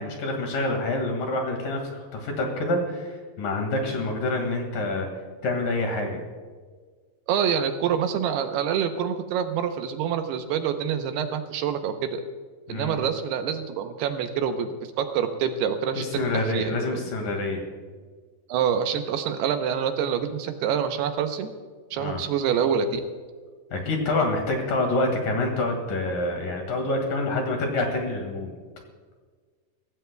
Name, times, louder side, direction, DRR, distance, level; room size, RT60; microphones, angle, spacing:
voice 1, 0.0-5.1 5.4-6.2 12.7-13.0 16.0-17.6 22.0-22.2 23.7-28.5, left 2 dB, 60° left, 2 dB, 3.4 m, -27 dB
voice 2, 7.3-12.2 12.7-14.7 15.0-17.0 18.5-21.5 21.9-23.0, right 8 dB, 80° right, 7 dB, 2.8 m, -26 dB
23.5 x 16.5 x 2.3 m, 1.5 s
omnidirectional pair, 4.8 m